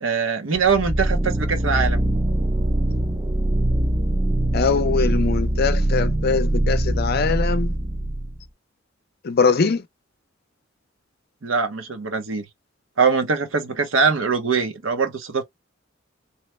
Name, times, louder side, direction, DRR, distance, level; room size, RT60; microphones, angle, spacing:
voice 1, 0.0-2.0 11.4-12.4 13.0-15.4, right 5 dB, 85° right, 0.8 m, -22 dB
sound 1, 0.6-8.4, right 1 dB, 20° right, 0.5 m, -22 dB
voice 2, 4.5-7.7 9.2-9.8, left 5 dB, 55° left, 0.5 m, -22 dB
3.0 x 2.1 x 3.0 m
head